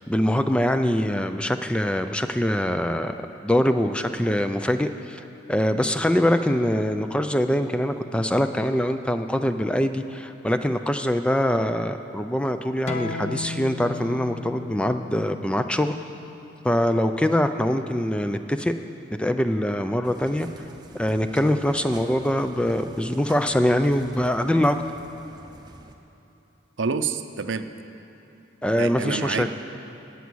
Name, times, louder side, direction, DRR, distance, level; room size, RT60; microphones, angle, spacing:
voice 1, 0.0-3.1 3.4-16.0 16.6-18.7 19.2-20.5 20.9-24.8 28.6-29.5, equal, 5° left, 8 dB, 0.4 m, -23 dB
sound 1, 12.9-18.0, left 4 dB, 35° left, 0.7 m, -38 dB
sound 2, 20.0-26.0, right 2 dB, 20° right, 0.8 m, -46 dB
voice 2, 26.8-27.7 28.8-29.5, right 5 dB, 75° right, 9 dB, 0.6 m, -27 dB
17.5 x 8.3 x 6.2 m, 3.0 s
head